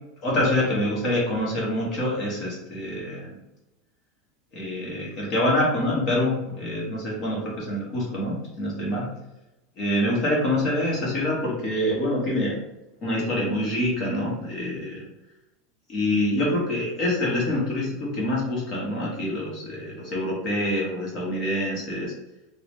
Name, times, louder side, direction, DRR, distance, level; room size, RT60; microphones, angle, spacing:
voice 1, 0.2-3.3 4.5-9.0 9.8-12.6 13.0-15.0 15.9-22.1, left 1 dB, 30° left, -4 dB, 0.9 m, -26 dB
3.7 x 2.0 x 3.4 m, 0.93 s
supercardioid pair, 175°, 0 cm